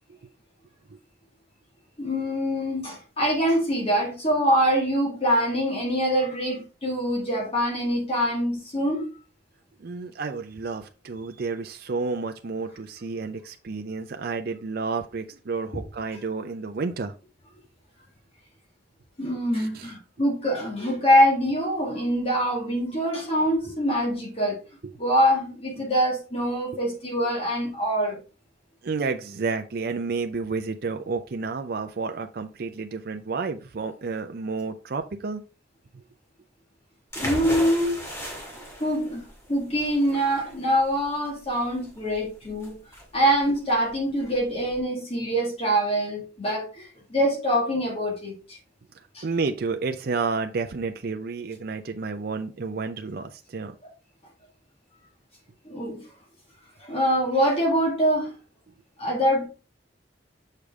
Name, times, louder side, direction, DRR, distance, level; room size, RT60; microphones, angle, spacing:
voice 1, 2.0-9.1 19.2-24.6 25.0-28.2 37.2-38.0 38.8-42.8 43.1-48.6 49.1-49.2 55.7-56.0 56.8-58.3 59.0-59.5, equal, 35° left, 2.1 m, -24 dB
voice 2, 9.8-17.1 19.5-19.9 24.8-24.9 28.8-35.4 35.9-36.0 49.2-53.7, right 4 dB, 60° right, 0.5 m, -31 dB
sound 1, 37.1-44.8, equal, 15° left, 2.1 m, -37 dB
6.6 x 5.0 x 3.5 m
head